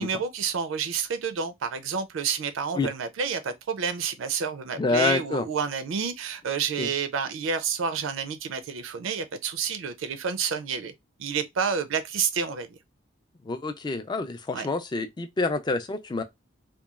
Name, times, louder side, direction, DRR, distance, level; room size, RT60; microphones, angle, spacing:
voice 1, 0.0-10.9 11.2-12.8 14.5-14.7, right 6 dB, 80° right, 0.4 m, -29 dB
voice 2, 4.8-5.5 6.8-6.9 13.4-16.2, left 3 dB, 20° left, 0.3 m, -27 dB
2.9 x 2.2 x 2.3 m
head